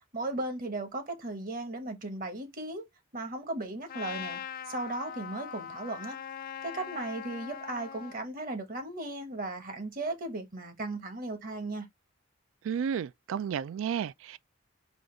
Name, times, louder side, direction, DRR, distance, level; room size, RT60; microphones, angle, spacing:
voice 1, 0.1-2.9 3.1-4.4 4.7-6.2 6.6-11.9, right 2 dB, 45° right, 1.1 m, -36 dB
Trumpet, 3.9-8.2, left 8 dB, 45° left, 0.4 m, -41 dB
voice 2, 12.6-14.4, right 7 dB, 75° right, 0.3 m, -32 dB
5.0 x 2.4 x 3.8 m
head